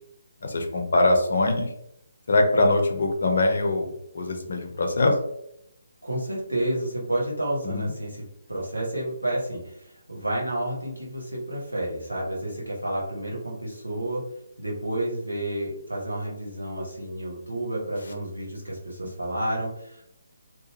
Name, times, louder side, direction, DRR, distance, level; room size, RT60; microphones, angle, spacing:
voice 1, 0.4-1.7 2.3-3.9 4.1-5.1 7.6-7.9, left 2 dB, 55° left, 3 dB, 0.6 m, -22 dB
voice 2, 6.0-8.2 8.5-14.2 14.6-20.0, right 1 dB, 80° right, -4 dB, 1.2 m, -30 dB
2.8 x 2.4 x 2.8 m, 0.78 s
figure-of-eight pair, 140°, 0 cm